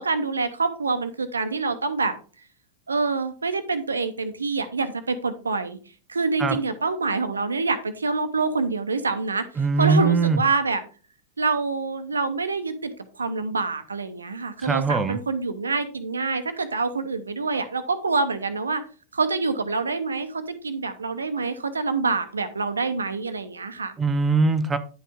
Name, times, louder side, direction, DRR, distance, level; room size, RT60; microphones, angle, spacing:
voice 1, 0.0-2.1 2.9-5.8 6.1-9.4 9.8-10.8 11.4-18.8 19.1-23.9, right 4 dB, 75° right, 0.9 m, -26 dB
voice 2, 9.6-10.4 14.6-15.2 24.0-24.8, right 4 dB, 15° right, 0.7 m, -21 dB
9.9 x 5.5 x 3.6 m
figure-of-eight pair, 90°, 0 cm